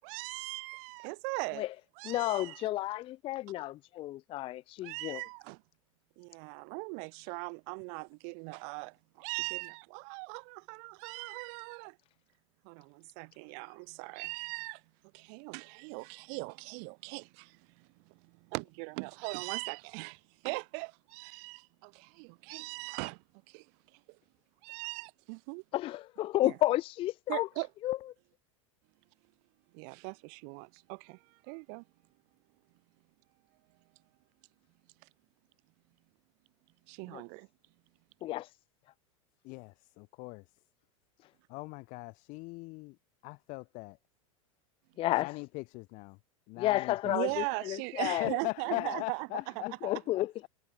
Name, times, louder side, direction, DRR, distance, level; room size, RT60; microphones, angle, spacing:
voice 1, 0.0-1.7 2.0-2.7 4.8-5.6 6.2-12.0 12.6-14.8 15.1-23.7 23.9-24.0 24.6-25.6 26.4-26.6 27.3-27.7 29.7-31.8 36.9-37.5 47.0-49.3, right 40 dB or more, 50° right, 7.7 m, -40 dB
voice 2, 2.0-5.2 25.7-27.5 27.8-28.0 37.1-37.2 38.2-38.5 45.0-45.3 46.6-48.3 49.8-50.3, left 15 dB, 30° left, 0.5 m, -31 dB
voice 3, 39.4-40.5 41.5-43.0 43.2-44.0 45.1-46.2 46.5-47.4 48.2-50.5, left 26 dB, 45° left, 3.1 m, -40 dB
figure-of-eight pair, 85°, 17 cm